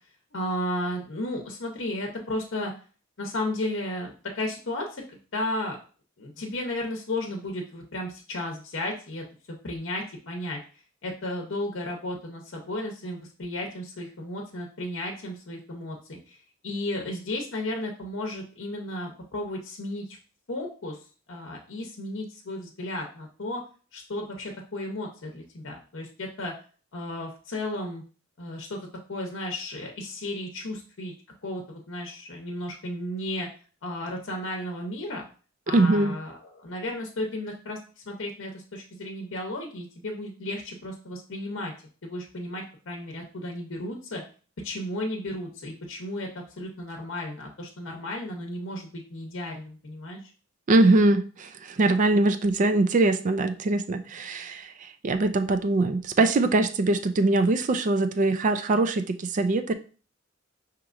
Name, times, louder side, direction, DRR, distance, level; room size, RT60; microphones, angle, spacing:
voice 1, 0.3-2.7 3.2-5.0 5.3-5.8 6.2-10.6 11.0-16.4 16.6-20.2 20.5-21.0 21.3-23.6 23.9-26.5 26.9-28.0 28.4-28.8 29.1-31.1 31.4-33.5 33.8-35.2 35.7-37.8 38.1-41.7 42.0-44.2 44.6-50.2, left 1 dB, 65° left, 2 dB, 0.8 m, -34 dB
voice 2, 35.7-36.1 50.7-59.7, right 2 dB, 40° right, 9 dB, 0.4 m, -22 dB
5.9 x 2.9 x 2.5 m, 0.39 s
head